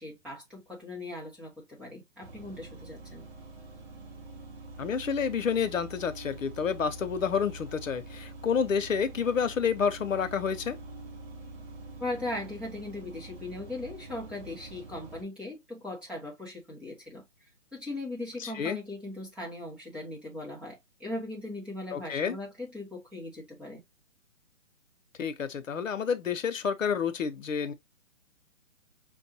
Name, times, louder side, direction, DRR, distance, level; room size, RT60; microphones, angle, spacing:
voice 1, 0.0-3.3 12.0-17.3 17.7-23.8, left 2 dB, 5° right, 1.1 m, -39 dB
sound 1, 2.2-15.2, right 2 dB, 50° right, 2.0 m, -45 dB
voice 2, 4.8-10.8 18.4-18.8 21.9-22.4 25.2-27.7, left 6 dB, 80° left, 0.9 m, -29 dB
6.0 x 2.6 x 2.8 m
hypercardioid pair, 155°, 39 cm